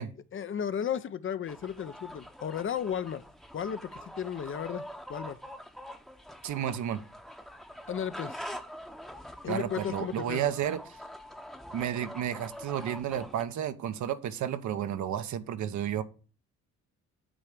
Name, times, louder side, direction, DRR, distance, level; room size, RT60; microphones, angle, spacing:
voice 1, 0.3-3.2 3.5-5.4 7.9-8.4 9.4-10.4, left 8 dB, 40° left, 0.6 m, -34 dB
sound 1, 1.5-13.4, equal, ahead, 0.8 m, -44 dB
voice 2, 6.4-7.0 9.5-11.0 11.7-16.0, right 10 dB, 70° right, 0.9 m, -32 dB
8.7 x 3.3 x 6.5 m
cardioid pair, 90°, 30 cm